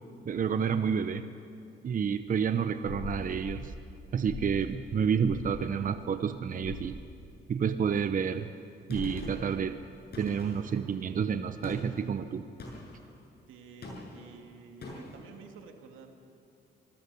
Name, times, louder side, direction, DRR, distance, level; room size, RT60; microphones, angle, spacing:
voice 1, 0.2-1.2 1.8-3.7 4.1-7.0 7.5-8.5 8.9-9.8 10.2-12.4, right 7 dB, 45° right, 9 dB, 0.8 m, -29 dB
sound 1, 2.8-3.7 4.3-4.6 5.2-5.5 6.6-6.9 8.9-9.3, left 5 dB, 75° left, 3.7 m, -40 dB
Gunshot gunfire, 8.9-9.6 10.1-10.8 11.6-12.0 12.6-13.0 13.8-14.3 14.8-15.2, left 2 dB, 55° left, 6.9 m, -43 dB
voice 2, 13.5-16.1, right 6 dB, 90° right, 3 dB, 2.4 m, -51 dB
26.0 x 19.5 x 7.0 m, 2.6 s
cardioid pair, 90°, 20 cm